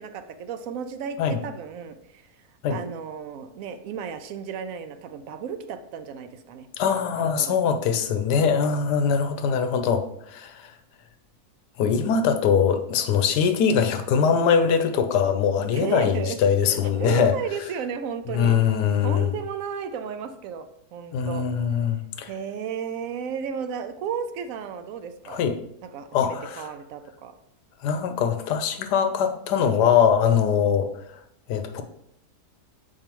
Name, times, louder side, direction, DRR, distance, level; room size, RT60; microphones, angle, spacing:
voice 1, 0.0-2.3 2.7-6.7 7.2-7.6 15.7-16.4 16.7-18.6 19.0-21.5 22.3-25.4 25.8-27.3, right 7 dB, 70° right, 9 dB, 0.8 m, -33 dB
voice 2, 6.8-10.7 11.8-17.3 18.3-19.3 21.1-22.3 25.3-25.5 26.1-26.7 27.8-30.9 31.5-31.8, left 7 dB, 90° left, 9 dB, 1.2 m, -22 dB
7.5 x 4.7 x 3.0 m, 0.74 s
omnidirectional pair, 1.7 m